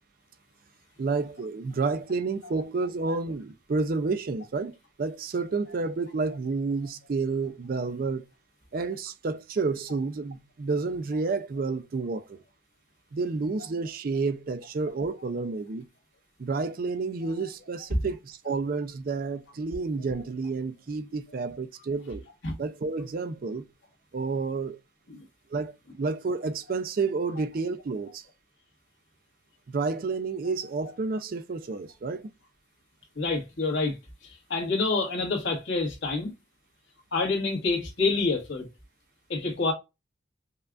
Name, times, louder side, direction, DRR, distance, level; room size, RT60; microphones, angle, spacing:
voice 1, 1.0-8.2 8.7-12.4 13.1-15.8 16.4-22.2 22.6-23.7 24.1-24.8 25.5-28.2 29.7-32.3, right 4 dB, 45° right, 0.4 m, -30 dB
voice 2, 33.1-34.0 34.2-36.3 37.1-38.7 39.3-39.7, left 3 dB, 70° left, 1.5 m, -27 dB
5.4 x 2.3 x 2.3 m
head